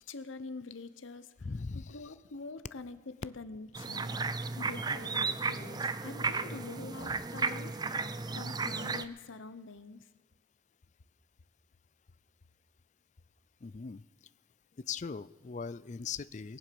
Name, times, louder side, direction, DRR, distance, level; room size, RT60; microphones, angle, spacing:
voice 1, 0.0-1.3 1.7-4.2 4.6-10.1, left 3 dB, 85° left, 13 dB, 0.9 m, -45 dB
voice 2, 1.4-2.0 4.6-5.0 6.5-6.6 13.6-14.0 14.9-16.6, left 5 dB, 40° left, 18 dB, 0.4 m, -40 dB
sound 1, 3.7-9.0, right 4 dB, 20° right, 0.4 m, -34 dB
21.0 x 7.5 x 6.9 m, 1.3 s
head